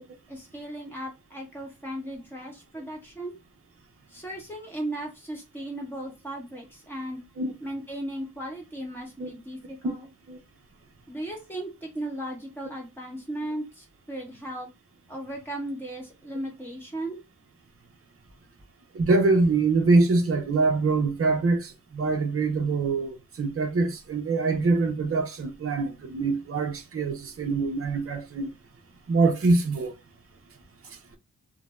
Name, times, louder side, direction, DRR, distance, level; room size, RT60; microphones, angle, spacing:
voice 1, 0.3-3.4 4.1-7.2 7.6-10.1 11.1-14.7 15.1-17.2, right 1 dB, 5° left, 1.0 m, -36 dB
voice 2, 18.9-28.5 29.1-29.9, right 3 dB, 40° right, 0.6 m, -24 dB
2.5 x 2.1 x 3.0 m
wide cardioid pair, 100°, 35 cm